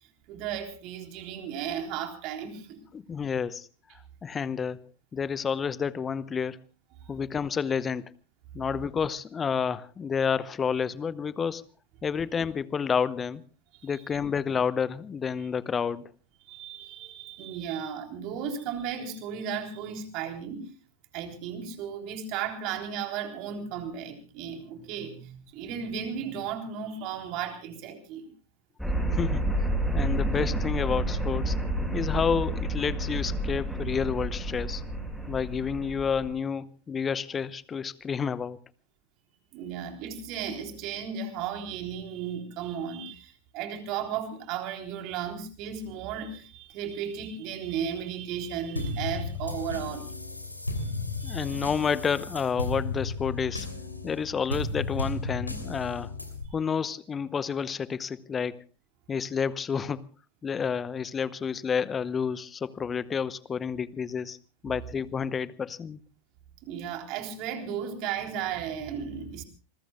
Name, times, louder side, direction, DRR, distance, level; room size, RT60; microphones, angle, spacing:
voice 1, 0.3-2.8 7.0-7.1 13.7-14.1 16.5-20.7 21.1-28.3 39.5-50.1 50.8-50.9 51.2-51.6 66.6-69.4, right 8 dB, 40° right, 3.7 m, -35 dB
voice 2, 2.9-3.7 4.2-4.8 5.1-6.6 7.1-8.1 8.5-11.6 12.0-13.4 13.8-16.0 29.1-31.6 31.9-34.8 35.3-38.6 51.2-53.7 54.0-56.1 56.5-58.6 59.1-60.0 60.4-64.4 64.6-66.0, left 6 dB, 20° left, 0.8 m, -30 dB
sound 1, 28.8-36.3, right 1 dB, ahead, 6.4 m, -29 dB
sound 2, 48.8-56.4, left 3 dB, 85° left, 3.1 m, -34 dB
27.5 x 21.5 x 2.4 m
figure-of-eight pair, 90°, 0 cm